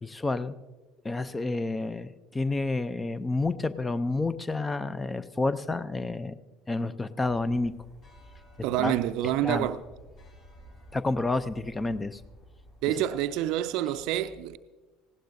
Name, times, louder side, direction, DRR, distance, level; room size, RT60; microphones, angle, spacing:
voice 1, 0.0-0.5 1.0-6.4 6.7-7.7 8.8-8.9 9.4-9.7 10.9-12.2, left 2 dB, 15° left, 0.6 m, -29 dB
sound 1, 7.2-13.7, equal, 45° left, 5.4 m, -52 dB
voice 2, 8.6-9.8 12.8-14.6, right 12 dB, 55° right, 0.5 m, -27 dB
19.0 x 16.5 x 2.7 m
figure-of-eight pair, 65°, 0 cm